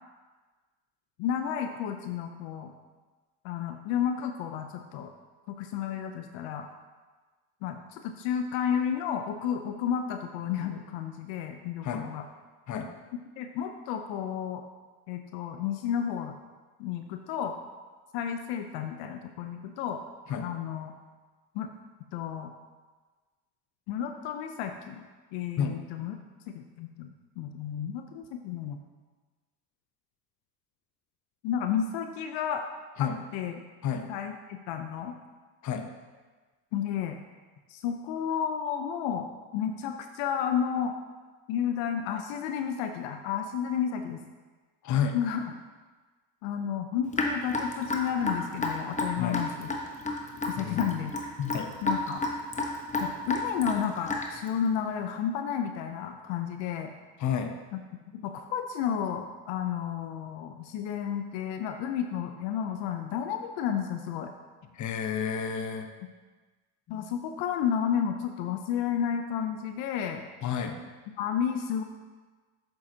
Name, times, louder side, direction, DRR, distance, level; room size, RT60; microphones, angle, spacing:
voice 1, 1.2-2.7 3.4-5.1 5.5-6.7 7.6-12.3 13.4-14.6 15.1-16.4 16.8-17.6 18.1-20.0 20.4-20.9 21.5-21.7 22.1-22.5 23.9-26.2 26.5-27.1 27.4-28.8 31.4-32.7 33.0-33.6 34.1-35.1 36.7-37.2 37.7-40.9 41.5-44.2 45.1-45.4 46.4-49.7 50.6-51.1 51.8-52.2 53.0-56.9 57.7-64.3 66.9-70.2 71.2-71.8, left 8 dB, 70° left, 6 dB, 0.7 m, -32 dB
voice 2, 44.8-45.2 49.2-49.4 50.6-50.9 51.4-51.7 57.2-57.5 64.7-65.9 66.9-67.0 70.4-70.8, left 7 dB, 40° left, 6 dB, 0.9 m, -30 dB
Raindrop / Drip, 47.1-54.5, left 2 dB, 15° left, 1.0 m, -31 dB
7.5 x 7.5 x 2.8 m, 1.3 s
supercardioid pair, 90°, 45 cm